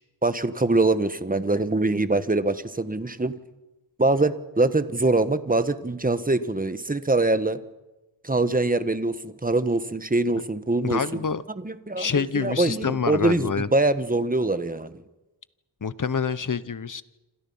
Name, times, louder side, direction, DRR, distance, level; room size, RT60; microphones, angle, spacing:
voice 1, 0.2-3.3 4.0-7.6 8.2-11.0 11.6-14.9, right 2 dB, 20° right, 11 dB, 1.4 m, -23 dB
voice 2, 10.8-11.4 12.0-13.7 15.8-17.0, left 6 dB, 40° left, 15 dB, 1.1 m, -27 dB
27.5 x 27.0 x 5.7 m, 1.0 s
wide cardioid pair, 80°, 47 cm